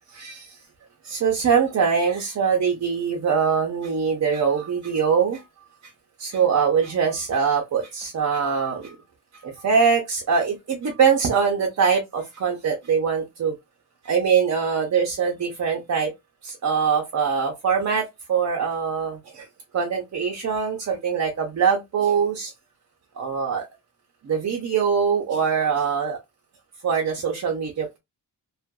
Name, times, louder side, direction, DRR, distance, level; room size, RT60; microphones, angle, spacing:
voice 1, 0.1-0.6 1.0-5.4 6.2-9.0 9.4-13.5 14.0-16.1 16.4-19.5 19.7-22.5 23.2-23.6 24.2-26.2 26.8-28.0, right 6 dB, 45° right, 0.6 m, -23 dB
2.7 x 2.5 x 2.2 m
wide cardioid pair, 155°, 41 cm